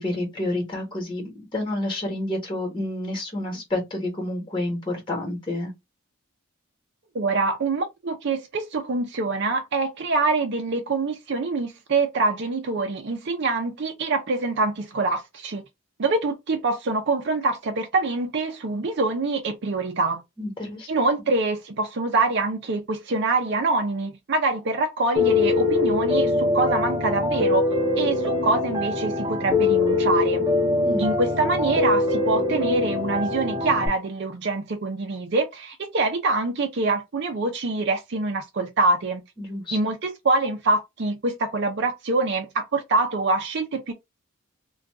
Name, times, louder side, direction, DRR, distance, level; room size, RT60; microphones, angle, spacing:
voice 1, 0.0-5.7 20.4-20.9 30.8-31.0 39.4-39.8, left 1 dB, 20° left, 1.2 m, -29 dB
voice 2, 7.1-15.7 16.0-20.2 20.9-27.7 27.9-30.5 31.0-39.2 39.7-43.9, right 3 dB, 55° right, 0.5 m, -25 dB
Piano, 25.2-33.9, left 3 dB, 20° right, 0.7 m, -23 dB
2.5 x 2.3 x 3.4 m
head